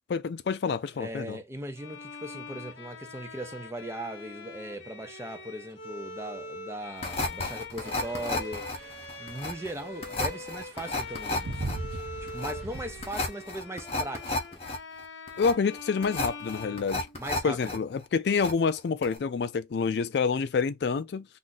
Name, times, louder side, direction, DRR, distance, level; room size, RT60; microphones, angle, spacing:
voice 1, 0.1-1.4 15.4-17.1 17.4-21.3, left 5 dB, 65° left, 0.3 m, -27 dB
voice 2, 1.0-11.7 12.3-14.7 17.1-17.8, right 1 dB, 15° right, 0.5 m, -39 dB
Bowed string instrument, 1.8-17.6, left 3 dB, 90° left, 0.8 m, -43 dB
last seq, 7.0-17.8 18.0-18.8 19.0-19.2, left 2 dB, 35° left, 0.7 m, -32 dB
sound 1, 7.8-13.2, right 2 dB, 65° right, 0.6 m, -41 dB
2.5 x 2.5 x 3.8 m
head